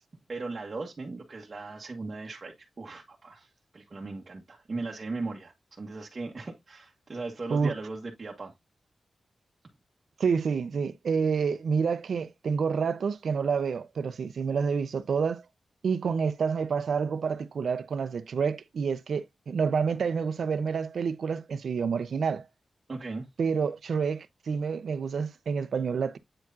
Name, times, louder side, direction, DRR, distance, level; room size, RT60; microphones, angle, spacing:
voice 1, 0.3-8.5 22.9-23.3, right 3 dB, 35° right, 1.5 m, -38 dB
voice 2, 10.2-15.4 15.8-22.4 23.4-26.2, right 5 dB, 75° right, 0.8 m, -28 dB
8.9 x 4.7 x 2.6 m
wide cardioid pair, 130°, 0 cm